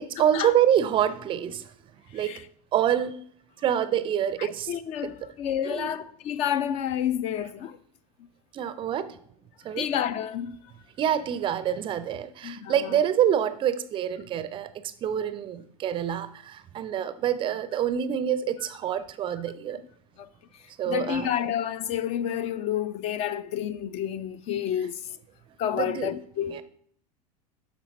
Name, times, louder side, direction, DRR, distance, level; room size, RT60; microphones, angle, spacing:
voice 1, 0.2-1.6 2.1-2.4 2.7-3.2 3.6-4.7 5.0-5.3 5.6-6.0 8.5-9.2 9.6-9.9 11.0-19.8 20.8-21.3 25.8-26.2 26.5-26.6, right 10 dB, 25° right, 0.5 m, -26 dB
voice 2, 4.4-7.8 9.7-10.6 12.4-13.0 20.2-20.3 20.9-25.0 25.6-26.6, left 10 dB, 30° left, 0.4 m, -29 dB
11.5 x 4.3 x 4.0 m
figure-of-eight pair, 80°, 21 cm